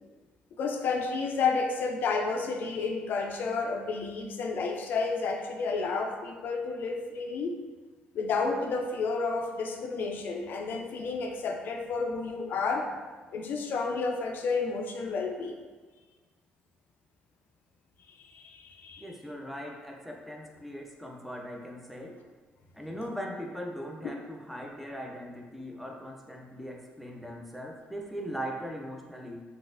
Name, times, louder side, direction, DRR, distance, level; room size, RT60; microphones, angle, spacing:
voice 1, 0.6-7.5 8.1-12.9 13.3-15.6 18.1-19.1, left 4 dB, 60° left, 3 dB, 0.4 m, -31 dB
voice 2, 19.0-22.2 22.7-29.4, equal, ahead, 0 dB, 0.5 m, -40 dB
3.9 x 2.4 x 2.4 m, 1.4 s
cardioid pair, 115°, 4 cm